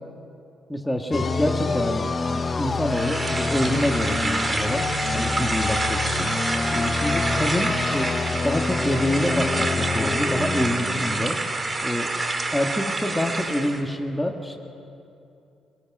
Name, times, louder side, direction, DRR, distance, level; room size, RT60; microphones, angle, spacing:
voice 1, 0.7-6.3 6.7-8.1 8.4-11.4 11.8-12.1 12.5-14.6, left 1 dB, 5° left, 3 dB, 1.7 m, -26 dB
sound 1, 1.1-11.7, left 4 dB, 30° left, 1.0 m, -27 dB
sound 2, 2.9-13.8, right 2 dB, 25° right, 2.1 m, -28 dB
26.0 x 20.5 x 6.1 m, 2.6 s
cardioid pair, 90°, 0 cm